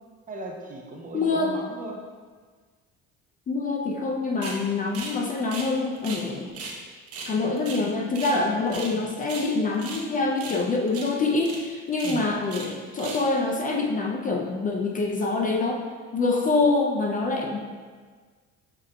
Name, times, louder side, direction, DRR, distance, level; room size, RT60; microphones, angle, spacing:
voice 1, 0.3-2.0 8.7-9.0 12.0-12.3, right 2 dB, 30° right, 1 dB, 0.6 m, -37 dB
voice 2, 1.1-1.5 3.5-6.5 7.2-15.8 16.1-17.6, left 3 dB, 30° left, 1 dB, 0.4 m, -25 dB
sound 1, 4.4-4.6 4.9-5.2 5.4-6.3 6.5-6.8 7.1-8.4 8.7-9.0 9.2-10.0 10.4-10.6 10.9-11.1 11.4-11.6 11.9-12.7 13.0-13.3, right 4 dB, 55° right, 0.9 m, -37 dB
6.6 x 3.4 x 2.2 m, 1.5 s
cardioid pair, 110°, 29 cm